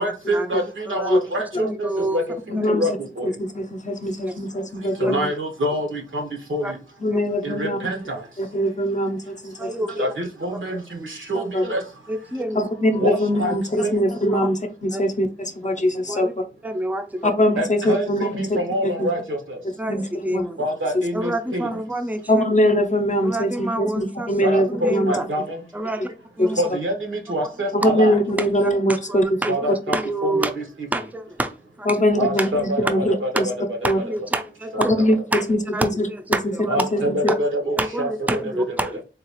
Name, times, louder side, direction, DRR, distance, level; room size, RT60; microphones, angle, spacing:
voice 1, 0.0-3.3 5.0-6.8 7.4-8.2 9.9-11.8 13.0-13.6 13.8-14.0 17.6-19.6 20.6-21.8 24.4-25.6 26.6-28.2 29.5-30.0 30.2-30.6 32.2-33.5 34.7-34.8 36.7-38.4, equal, 85° right, 1.1 m, -26 dB
voice 2, 1.6-2.2 2.6-2.7 4.3-4.4 6.6-6.7 7.1-7.2 9.6-10.1 11.3-11.5 12.1-12.6 14.3-14.5 14.9-15.0 16.1-16.3 16.6-17.3 19.8-20.6 21.1-22.4 23.2-24.3 24.7-25.3 25.7-26.1 26.4-26.6 27.8-27.9 28.4-30.5 30.9-32.0 32.4-32.5 33.8-34.9 35.3-35.4 35.7-36.9 37.8-39.0, right 1 dB, 10° right, 0.5 m, -28 dB
voice 3, 2.5-2.8 3.4-5.3 7.0-7.8 8.4-9.7 11.5-11.6 12.6-16.3 17.2-18.4 19.0-19.1 19.9-20.4 22.3-25.1 26.4-26.6 27.7-29.2 31.9-33.1 33.9-34.0 34.8-36.1 36.9-37.0, equal, 40° left, 0.6 m, -22 dB
3.9 x 2.3 x 3.0 m
wide cardioid pair, 60°, 20 cm